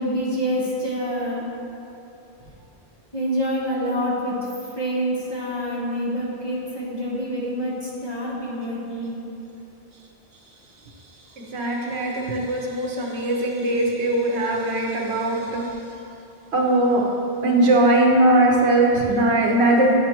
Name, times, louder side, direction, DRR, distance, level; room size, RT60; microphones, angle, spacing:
voice 1, 0.0-1.5 2.4-2.5 3.1-9.3, equal, 25° left, -7 dB, 1.2 m, -27 dB
voice 2, 11.3-15.7 16.5-17.0 17.4-19.9, right 1 dB, 80° right, -1 dB, 1.1 m, -20 dB
9.0 x 3.2 x 4.4 m, 2.8 s
omnidirectional pair, 1.1 m